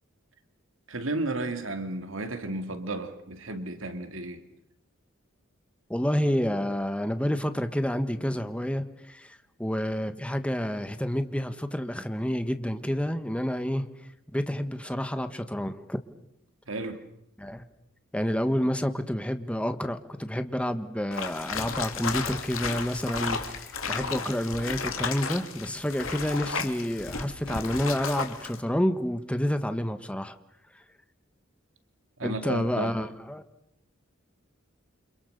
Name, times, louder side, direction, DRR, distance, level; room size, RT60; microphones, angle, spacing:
voice 1, 0.9-4.4 16.7-17.0 32.2-32.9, right 2 dB, 70° right, 2.6 m, -33 dB
voice 2, 5.9-13.9 14.3-16.0 17.4-17.6 18.1-30.3 32.2-33.4, equal, 5° left, 1.5 m, -29 dB
sound 1, 21.1-28.6, left 5 dB, 85° left, 2.9 m, -33 dB
29.0 x 26.5 x 6.8 m
head